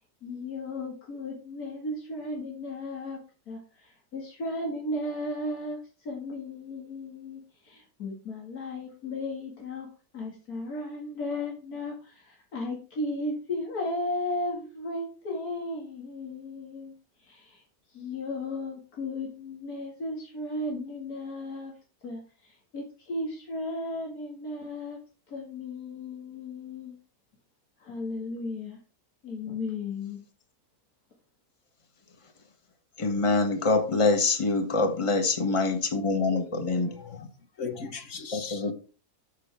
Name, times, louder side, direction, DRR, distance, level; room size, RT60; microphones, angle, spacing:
voice 1, 0.2-3.2 3.5-16.9 17.2-17.6 17.9-21.7 22.0-25.0 25.3-27.0 27.8-28.8 29.2-30.2, left 2 dB, 90° left, 2.7 m, -35 dB
voice 2, 33.0-36.9 38.3-38.7, left 3 dB, 25° left, 1.2 m, -25 dB
voice 3, 36.3-37.3 37.6-38.6, left 5 dB, 60° left, 1.4 m, -39 dB
12.5 x 5.6 x 3.5 m
omnidirectional pair, 1.5 m